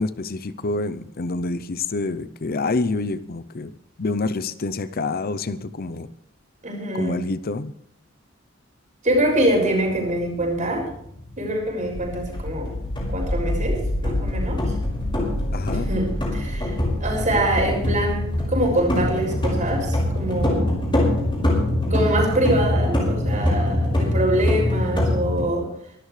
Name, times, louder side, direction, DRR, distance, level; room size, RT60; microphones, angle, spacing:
voice 1, 0.0-3.7 4.0-6.1 6.9-7.7 15.5-15.9, left 3 dB, 50° left, 14 dB, 0.6 m, -27 dB
voice 2, 6.6-7.3 9.0-10.9 11.4-12.7 13.1-14.6 15.7-20.7 21.9-25.7, right 1 dB, 40° right, 1 dB, 6.3 m, -24 dB
sound 1, 9.1-25.4, left 1 dB, 25° left, 5.4 m, -25 dB
sound 2, 11.9-22.6, left 1 dB, 85° left, 6.0 m, -30 dB
24.0 x 13.0 x 3.3 m, 0.72 s
head